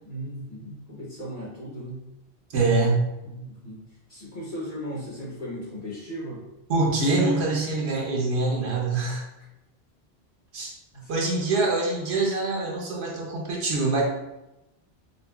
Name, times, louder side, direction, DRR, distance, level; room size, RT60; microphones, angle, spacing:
voice 1, 0.0-2.0 3.2-3.8 4.1-6.4 10.9-11.1, equal, 35° left, -5 dB, 1.0 m, -37 dB
voice 2, 2.5-3.1 6.7-9.2 10.5-10.7 11.1-14.0, right 3 dB, 75° right, -2 dB, 1.1 m, -24 dB
5.2 x 2.1 x 2.2 m, 0.93 s
omnidirectional pair, 1.1 m